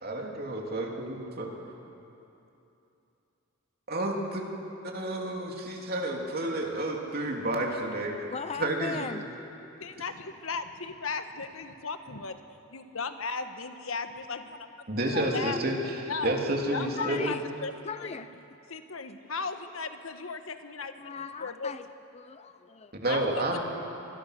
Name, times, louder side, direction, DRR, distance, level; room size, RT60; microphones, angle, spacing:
voice 1, 0.0-1.5 3.9-4.4 4.8-8.3 8.6-9.1 14.9-17.3 22.9-23.6, right 1 dB, 50° right, 0 dB, 3.0 m, -30 dB
voice 2, 8.3-9.2 16.9-17.4 17.8-18.3 21.0-21.8 22.1-22.9, left 5 dB, 30° left, 11 dB, 0.5 m, -38 dB
voice 3, 9.8-12.3 12.7-14.7 15.1-15.6 16.1-16.4 16.7-17.7 18.0-18.3 18.7-20.9 21.4-21.7 23.1-23.6, left 4 dB, 85° left, 8 dB, 1.3 m, -36 dB
25.0 x 20.5 x 6.6 m, 2.9 s
head